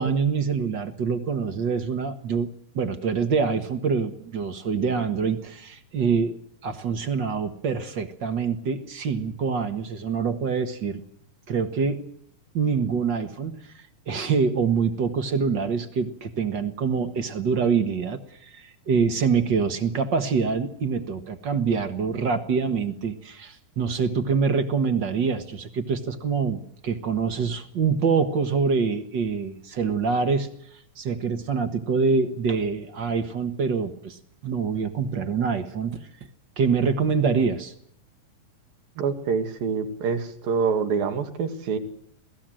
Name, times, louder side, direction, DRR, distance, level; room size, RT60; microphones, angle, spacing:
voice 1, 0.0-6.4 6.6-11.0 11.5-12.0 12.5-13.6 14.1-30.5 31.0-36.0 36.6-37.7, right 5 dB, 50° right, 9 dB, 1.3 m, -25 dB
voice 2, 39.0-41.8, right 5 dB, 85° right, 7 dB, 3.9 m, -26 dB
27.0 x 18.0 x 7.7 m, 0.69 s
omnidirectional pair, 4.0 m